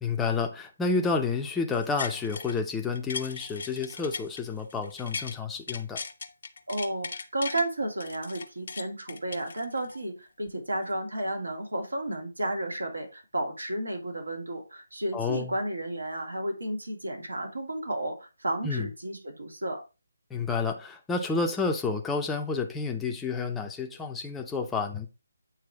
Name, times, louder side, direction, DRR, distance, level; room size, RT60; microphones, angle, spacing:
voice 1, 0.0-6.0 15.1-15.5 18.6-18.9 20.3-25.1, left 4 dB, 5° left, 0.8 m, -30 dB
sound 1, 1.7-2.6 2.9-5.4 5.7-7.6 8.0-10.0 10.5-10.6, left 5 dB, 55° left, 0.8 m, -38 dB
voice 2, 6.7-19.8, right 1 dB, 75° right, 2.6 m, -32 dB
8.7 x 3.3 x 4.8 m
figure-of-eight pair, 150°, 0 cm